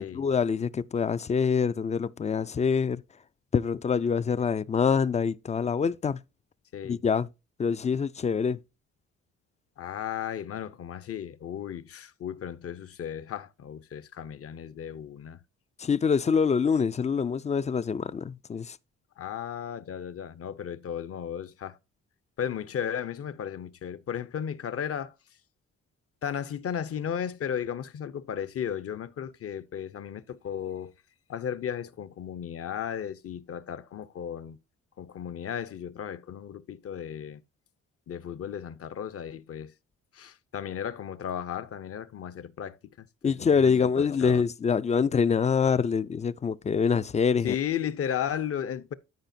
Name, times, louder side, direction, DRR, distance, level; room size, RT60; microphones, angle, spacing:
voice 1, 0.0-3.0 3.5-6.2 6.8-7.3 7.6-8.6 15.8-18.8 43.2-47.5, left 6 dB, 25° left, 0.3 m, -25 dB
voice 2, 9.8-15.4 19.2-21.8 22.4-25.1 26.2-30.9 31.3-34.6 35.0-37.4 38.1-39.7 40.1-44.4 47.4-48.9, left 9 dB, 50° left, 0.7 m, -35 dB
13.5 x 4.9 x 2.6 m
cardioid pair, 90°, 30 cm